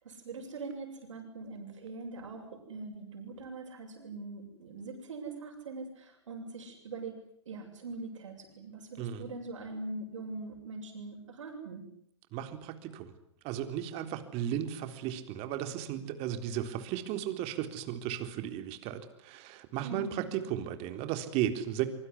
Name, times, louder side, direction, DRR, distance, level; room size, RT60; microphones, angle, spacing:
voice 1, 0.0-7.2 7.5-11.9 19.8-20.3, right 3 dB, 80° right, 3 dB, 7.9 m, -42 dB
voice 2, 9.0-9.3 12.3-13.1 13.4-21.8, right 11 dB, 40° right, 9 dB, 3.8 m, -35 dB
25.0 x 24.0 x 9.9 m, 0.66 s
hypercardioid pair, 120°, 16 cm